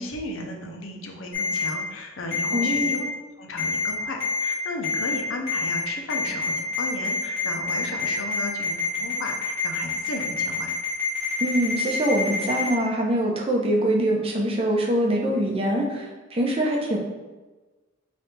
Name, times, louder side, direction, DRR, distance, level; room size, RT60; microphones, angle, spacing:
voice 1, 0.0-3.1 3.4-10.7, left 2 dB, 70° left, 2 dB, 0.6 m, -35 dB
Ringtone, 1.3-1.7 2.3-3.0 3.6-3.9 4.2-4.5 4.8-5.2 5.5-5.8 6.1-12.7, left 4 dB, 10° left, 1.2 m, -26 dB
voice 2, 2.5-2.9 11.4-17.0, right 1 dB, 30° right, -1 dB, 0.6 m, -24 dB
3.3 x 2.6 x 4.3 m, 1.2 s
head